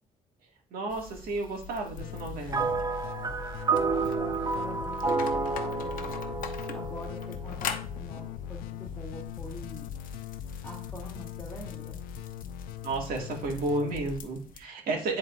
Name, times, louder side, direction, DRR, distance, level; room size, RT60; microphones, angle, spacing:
voice 1, 0.7-2.7 12.8-15.2, right 2 dB, 75° right, 0 dB, 2.1 m, -32 dB
sound 1, 0.9-14.6, left 7 dB, 65° left, 0.8 m, -44 dB
sound 2, 2.0-14.2, left 9 dB, 90° left, 0.5 m, -40 dB
sound 3, 2.5-8.0, right 4 dB, 25° right, 0.5 m, -30 dB
voice 2, 3.8-6.2 6.7-9.9 10.6-12.0, left 1 dB, 15° left, -4 dB, 1.9 m, -44 dB
10.0 x 4.2 x 2.5 m, 0.41 s
cardioid pair, 95°, 15 cm